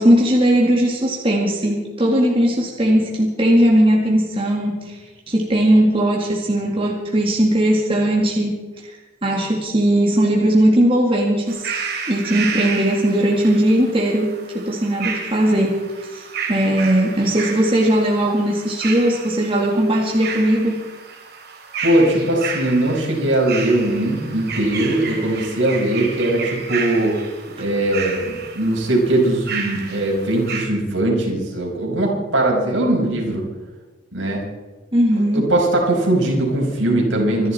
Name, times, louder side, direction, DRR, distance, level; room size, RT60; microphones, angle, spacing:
voice 1, 0.0-5.0 5.3-8.6 8.8-8.9 9.2-11.7 12.1-20.8 34.9-35.4, right 1 dB, 25° right, -1 dB, 2.2 m, -18 dB
sound 1, 11.5-30.7, right 5 dB, 50° right, 2.9 m, -31 dB
voice 2, 21.8-27.2 27.6-33.4 34.1-34.4 35.2-37.5, right 1 dB, 70° right, -1 dB, 5.2 m, -20 dB
26.0 x 10.5 x 4.4 m, 1.3 s
head